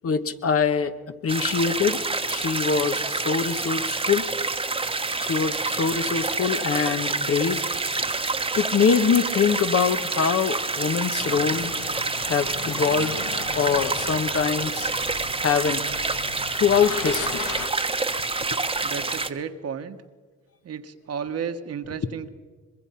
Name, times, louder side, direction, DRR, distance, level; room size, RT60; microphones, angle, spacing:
voice 1, 0.0-0.9 1.2-2.0 2.3-4.2 5.2-7.6 8.5-11.7 12.3-13.3 13.5-14.9 15.4-16.0 16.5-17.4 18.5-18.6, left 6 dB, 50° left, 10 dB, 1.2 m, -24 dB
sound 1, 1.3-19.3, right 3 dB, 20° right, 1.2 m, -27 dB
sound 2, 11.1-17.7, left 6 dB, 75° left, 1.8 m, -37 dB
voice 2, 18.8-20.0 20.6-22.3, right 7 dB, 55° right, 8 dB, 1.4 m, -33 dB
23.5 x 21.5 x 5.8 m, 1.5 s
cardioid pair, 90°, 30 cm